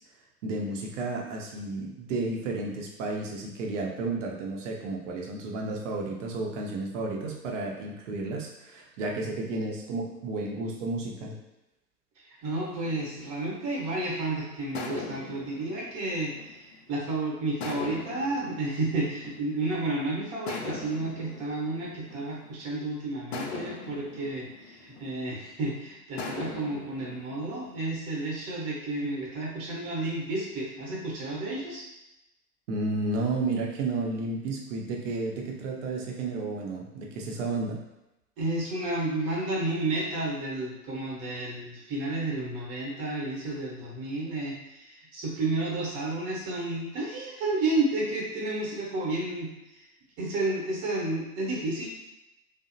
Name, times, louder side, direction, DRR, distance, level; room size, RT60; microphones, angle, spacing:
voice 1, 0.4-11.4 32.7-37.8, right 2 dB, 50° right, 0 dB, 0.7 m, -32 dB
voice 2, 12.4-16.3 16.6-31.8 38.4-49.8 50.2-51.9, right 2 dB, 35° right, -4 dB, 0.9 m, -31 dB
sound 1, 12.8-14.1 14.7-17.0 17.6-19.8 20.5-22.7 23.3-25.6 26.2-27.8, left 4 dB, 45° left, 0.4 m, -41 dB
2.7 x 2.0 x 2.6 m, 0.92 s
figure-of-eight pair, 95°, 47 cm